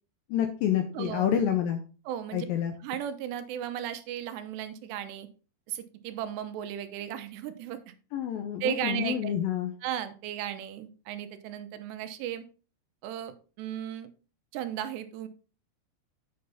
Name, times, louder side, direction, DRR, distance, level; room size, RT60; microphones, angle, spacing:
voice 1, 0.3-1.8 2.3-2.7 8.1-9.7, left 9 dB, 80° left, 6 dB, 2.1 m, -28 dB
voice 2, 0.9-1.3 2.1-2.5 2.8-5.3 5.7-8.0 8.6-9.3 9.8-12.4 13.0-14.1 14.5-15.3, right 10 dB, 85° right, 10 dB, 3.0 m, -35 dB
7.8 x 6.7 x 4.0 m, 0.36 s
omnidirectional pair, 4.9 m